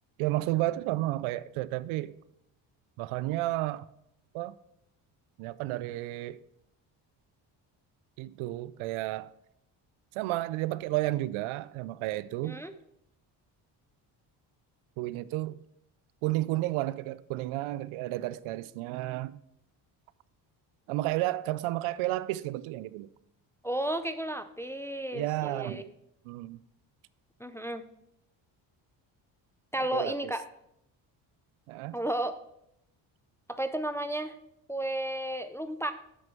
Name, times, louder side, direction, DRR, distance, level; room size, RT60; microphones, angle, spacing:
voice 1, 0.2-2.1 3.0-3.8 4.3-4.6 5.4-6.4 8.2-9.3 10.1-12.6 15.0-15.6 16.2-19.4 20.9-23.1 25.1-25.8 26.3-26.6 29.9-30.3 31.7-32.0, right 17 dB, 75° right, 0.5 m, -32 dB
voice 2, 23.6-25.8 27.4-27.8 29.7-30.4 31.9-32.4 33.5-34.4 34.7-35.9, right 1 dB, 5° left, 0.4 m, -33 dB
7.8 x 6.0 x 4.5 m
supercardioid pair, 70°, 49 cm